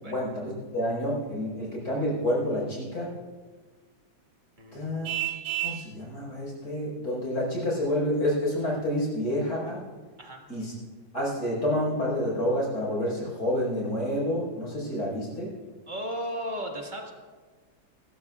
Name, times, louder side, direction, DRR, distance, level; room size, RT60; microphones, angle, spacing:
voice 1, 0.0-3.1 4.7-5.1 5.6-9.8 10.5-10.7 11.1-15.5, left 1 dB, 50° left, -3 dB, 5.2 m, -29 dB
voice 2, 4.6-5.1 10.2-10.4 15.9-17.1, equal, 25° right, 1 dB, 1.6 m, -35 dB
Vehicle horn car horn honking, 5.0-5.9, right 15 dB, 75° right, 1.5 m, -30 dB
24.5 x 14.0 x 2.4 m, 1.4 s
omnidirectional pair, 2.2 m